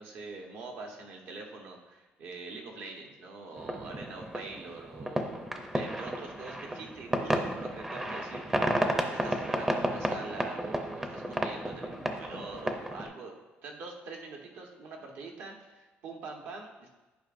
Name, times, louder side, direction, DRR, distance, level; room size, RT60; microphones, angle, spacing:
voice 1, 0.0-5.5 5.7-13.3 13.6-16.9, right 3 dB, 70° right, 1 dB, 1.1 m, -44 dB
sound 1, 3.5-13.1, right 1 dB, 10° right, 0.5 m, -32 dB
11.0 x 4.9 x 2.5 m, 1.1 s
cardioid pair, 155°, 4 cm